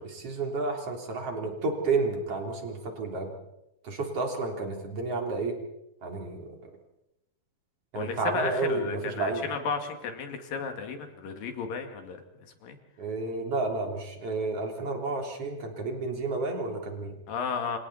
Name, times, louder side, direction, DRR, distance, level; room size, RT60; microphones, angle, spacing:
voice 1, 0.0-3.3 3.8-5.6 6.0-6.4 7.9-9.4 13.0-17.1, right 3 dB, 40° right, 2 dB, 4.4 m, -31 dB
voice 2, 8.0-12.8 17.3-17.8, left 5 dB, 70° left, 5 dB, 3.9 m, -34 dB
29.0 x 27.0 x 4.3 m, 0.90 s
omnidirectional pair, 4.1 m